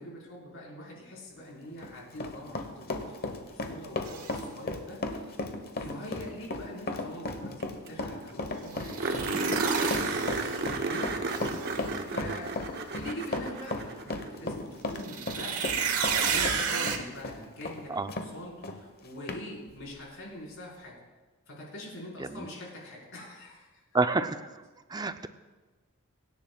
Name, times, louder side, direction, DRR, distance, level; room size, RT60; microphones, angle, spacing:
voice 1, 0.0-5.3 5.7-11.1 12.1-12.5 12.9-20.9 21.5-23.7, left 1 dB, 60° left, -4 dB, 4.7 m, -43 dB
Run, 1.6-18.3 18.6-18.8 19.3-19.4, left 2 dB, 45° left, 1.1 m, -35 dB
sound 1, 4.0-4.3 8.7-10.8 11.3-11.9 14.9-17.0, right 6 dB, 75° right, 1.2 m, -31 dB
sound 2, 7.6-7.7 7.9-8.0 8.3-8.4 9.0-14.4 16.7-16.8 19.7-19.8, right 3 dB, 45° right, 1.0 m, -33 dB
voice 2, 23.9-24.4 24.9-25.3, right 3 dB, 20° right, 9 dB, 0.5 m, -29 dB
24.0 x 10.5 x 2.4 m, 1.3 s
head